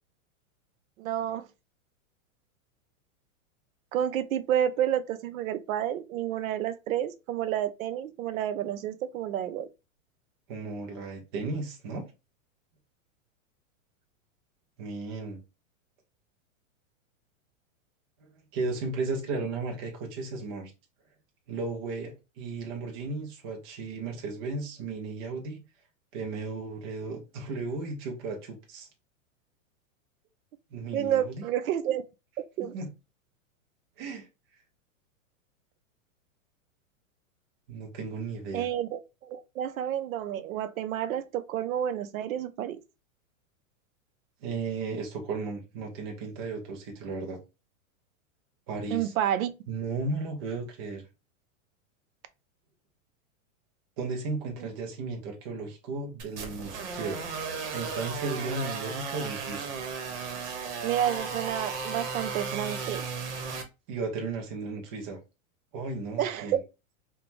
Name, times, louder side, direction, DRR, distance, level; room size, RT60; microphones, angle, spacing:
voice 1, 1.0-1.5 3.9-9.7 30.9-32.0 32.6-32.7 38.5-42.8 48.9-49.5 54.6-54.7 60.8-63.1 66.2-66.6, right 10 dB, 90° right, 0.6 m, -30 dB
voice 2, 10.5-12.1 14.8-15.4 18.5-20.7 21.5-25.6 26.1-28.9 30.7-31.4 32.6-32.9 34.0-34.2 37.7-38.7 44.4-47.4 48.7-49.1 49.7-51.0 54.0-57.2 57.7-59.7 63.9-65.2 65.7-66.6, right 3 dB, 20° right, 0.3 m, -35 dB
sound 1, 56.2-63.6, right 5 dB, 60° right, 0.9 m, -35 dB
2.5 x 2.2 x 2.9 m
supercardioid pair, 150°, 40 cm